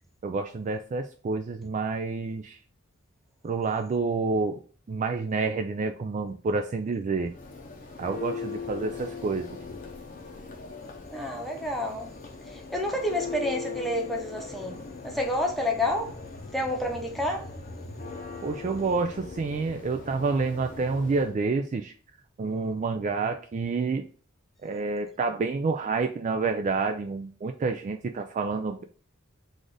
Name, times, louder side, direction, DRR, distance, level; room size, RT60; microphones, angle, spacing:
voice 1, 0.2-2.6 3.4-4.6 4.9-7.3 8.0-9.6 18.4-21.9 22.4-24.1 24.6-28.8, right 4 dB, 35° right, 0.3 m, -28 dB
Church bell, 7.2-21.4, left 4 dB, 40° left, 0.7 m, -40 dB
voice 2, 11.1-12.1 12.5-14.8 15.0-16.1 16.5-17.5, left 1 dB, ahead, 0.8 m, -29 dB
4.1 x 2.5 x 4.8 m
head